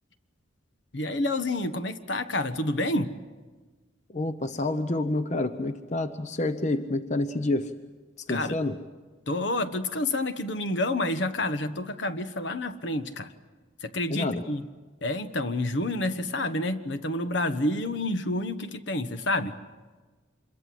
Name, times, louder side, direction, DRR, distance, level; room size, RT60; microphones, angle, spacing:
voice 1, 0.9-3.1 8.3-8.6 9.3-13.3 13.8-14.6 15.0-19.6, left 1 dB, 65° left, 10 dB, 1.3 m, -29 dB
voice 2, 4.1-7.7 8.3-8.8 14.1-14.4, left 2 dB, 40° left, 10 dB, 0.9 m, -28 dB
26.5 x 22.5 x 7.8 m, 1.3 s
head